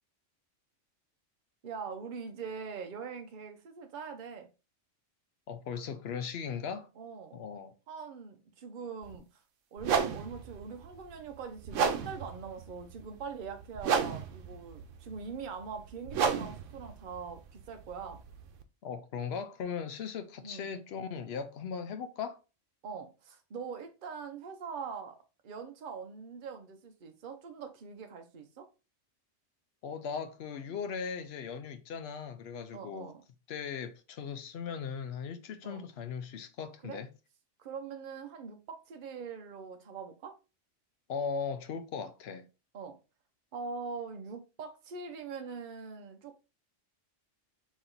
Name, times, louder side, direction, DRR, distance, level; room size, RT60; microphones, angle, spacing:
voice 1, 1.6-4.5 7.0-7.4 7.9-9.2 9.7-18.2 20.4-20.7 22.8-25.2 25.4-28.7 32.7-33.2 35.6-35.9 36.8-37.0 37.6-40.4 42.7-43.0 43.5-46.4, right 5 dB, 50° right, 0.8 m, -42 dB
voice 2, 5.5-6.9 7.3-7.7 18.8-22.4 29.8-33.1 33.5-37.1 41.1-42.5, left 6 dB, 65° left, 0.8 m, -38 dB
sound 1, 9.0-9.2 9.8-18.6, right 6 dB, 85° right, 1.0 m, -34 dB
4.2 x 2.9 x 3.8 m
omnidirectional pair, 1.2 m